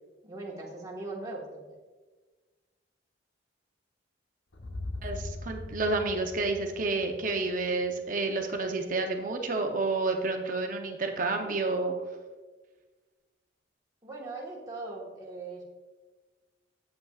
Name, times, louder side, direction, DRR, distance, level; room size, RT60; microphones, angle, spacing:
voice 1, 0.2-1.4 14.0-15.6, right 2 dB, 20° right, -4 dB, 1.4 m, -39 dB
sound 1, 4.5-8.6, left 2 dB, 80° left, 0.9 m, -41 dB
voice 2, 5.0-12.0, right 3 dB, 45° right, 4 dB, 0.7 m, -30 dB
8.1 x 8.0 x 2.4 m, 1.3 s
head